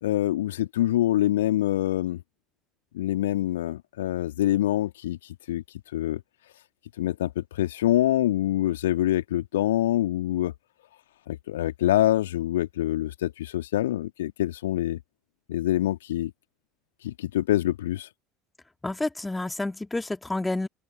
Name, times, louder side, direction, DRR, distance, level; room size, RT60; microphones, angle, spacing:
voice 1, 0.0-2.2 2.9-5.6 5.9-6.2 7.0-10.5 11.3-15.0 15.5-16.3 17.0-18.1, left 13 dB, 70° left, 2.0 m, -25 dB
voice 2, 18.8-20.7, left 2 dB, 10° left, 2.5 m, -29 dB
open air
figure-of-eight pair, 65°, 0 cm